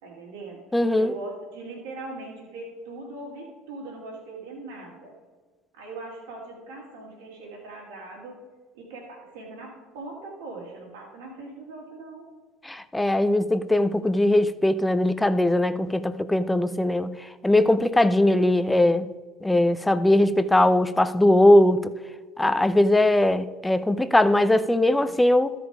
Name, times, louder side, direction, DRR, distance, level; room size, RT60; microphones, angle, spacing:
voice 1, 0.0-0.6 1.0-5.1 5.7-8.3 8.7-12.3, right 2 dB, 80° right, 2.7 m, -40 dB
voice 2, 0.7-1.1 12.6-17.1 17.4-19.1 19.4-21.9 22.4-25.5, left 1 dB, 10° left, 0.6 m, -20 dB
13.0 x 5.0 x 5.0 m
hypercardioid pair, 80°, 0 cm